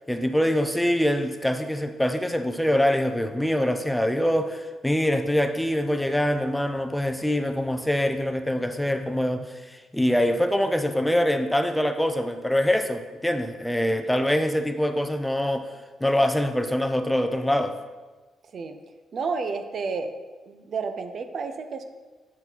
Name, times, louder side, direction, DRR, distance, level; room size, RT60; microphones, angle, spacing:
voice 1, 0.1-15.7 16.0-17.8, left 1 dB, 5° left, 7 dB, 0.5 m, -24 dB
voice 2, 19.1-20.1 20.5-21.8, right 4 dB, 50° right, 8 dB, 0.7 m, -31 dB
7.2 x 6.8 x 4.1 m, 1.3 s
cardioid pair, 90°, 0 cm